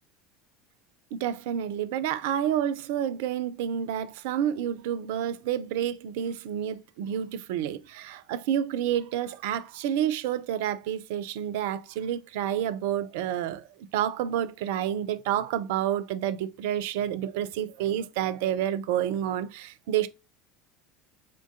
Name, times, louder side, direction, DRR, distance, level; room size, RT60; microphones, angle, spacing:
voice 1, 1.1-13.7 13.9-20.1, right 10 dB, 65° right, 0.4 m, -29 dB
3.7 x 3.7 x 2.4 m
figure-of-eight pair, 70°, 0 cm